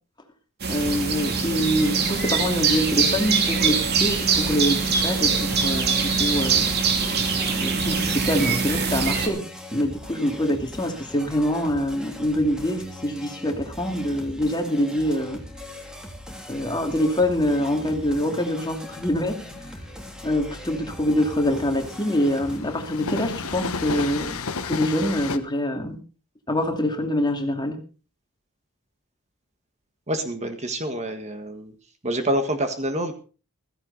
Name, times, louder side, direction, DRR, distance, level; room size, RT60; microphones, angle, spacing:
sound 1, 0.6-9.3, right 5 dB, 50° right, 2.8 m, -23 dB
voice 1, 0.7-6.7 7.6-9.4 9.7-15.4 16.5-19.4 20.2-24.4 24.6-26.0 26.5-27.8, equal, 20° left, 4 dB, 2.5 m, -25 dB
sound 2, 4.9-22.6, left 1 dB, 5° right, 3.0 m, -40 dB
Train, 16.3-25.4, left 4 dB, 75° left, 1.2 m, -34 dB
voice 2, 30.1-31.7 32.0-33.1, right 1 dB, 30° right, 7 dB, 1.7 m, -27 dB
15.5 x 14.5 x 4.1 m, 0.36 s
head